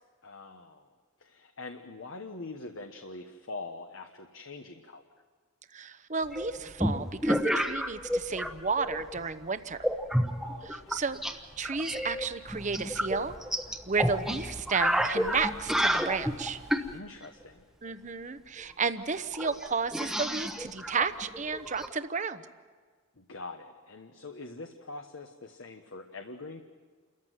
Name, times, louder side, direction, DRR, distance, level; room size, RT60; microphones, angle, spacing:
voice 1, 0.2-0.9 1.2-5.0 10.4-11.0 16.9-17.6 23.2-26.6, left 3 dB, 75° left, 4 dB, 1.3 m, -44 dB
voice 2, 5.7-9.8 10.6-11.2 11.6-13.3 13.9-16.6 17.8-22.4, right 5 dB, 35° right, 11 dB, 0.9 m, -32 dB
sound 1, 6.3-8.5 8.8-9.3 9.8-11.3 11.6-16.9 18.6-18.7 18.9-19.0 19.3-21.9, equal, ahead, 1.1 m, -30 dB
29.0 x 14.5 x 9.3 m, 1.5 s
head